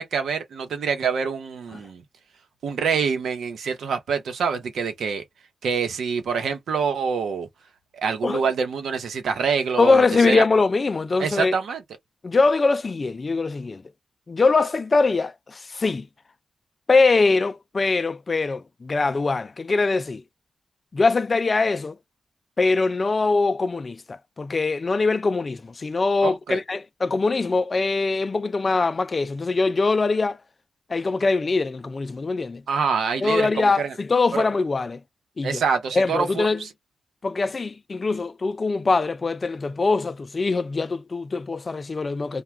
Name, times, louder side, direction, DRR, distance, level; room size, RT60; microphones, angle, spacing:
voice 1, 0.0-2.0 2.6-5.2 5.6-7.5 7.9-10.4 11.2-11.8 26.2-26.6 32.7-33.9 34.3-34.4 35.4-36.7, right 5 dB, 85° right, 0.8 m, -26 dB
voice 2, 9.8-11.6 12.2-13.8 14.3-16.1 16.9-20.2 20.9-22.0 22.6-30.4 30.9-32.6 33.2-35.0 35.4-35.6 35.9-36.6 37.2-42.4, left 3 dB, 40° left, 0.3 m, -22 dB
2.3 x 2.2 x 3.1 m
cardioid pair, 80°, 0 cm